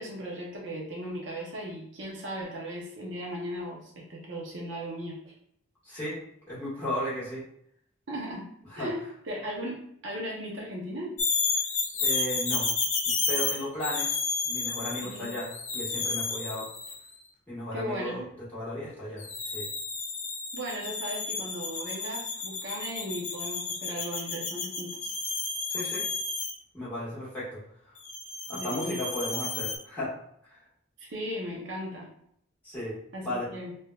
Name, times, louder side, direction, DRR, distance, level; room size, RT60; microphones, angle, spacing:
voice 1, 0.0-5.3 8.1-8.4 8.8-9.8 10.0-11.2 15.0-15.3 17.7-18.3 20.5-25.1 28.5-29.0 31.0-32.1 33.1-33.7, equal, 65° right, -3 dB, 0.7 m, -37 dB
voice 2, 5.8-6.2 6.5-7.4 8.7-8.9 12.0-12.7 13.3-15.5 15.7-16.7 17.5-18.2 18.5-19.7 25.7-26.0 26.7-27.6 27.8-27.9 28.5-30.1 30.4-30.6 32.6-33.0 33.2-33.5, left 1 dB, 10° left, -10 dB, 1.5 m, -35 dB
sound 1, 11.2-17.0 19.2-26.5 28.0-29.8, left 4 dB, 35° left, 0.5 m, -31 dB
3.3 x 2.7 x 2.3 m, 0.69 s
head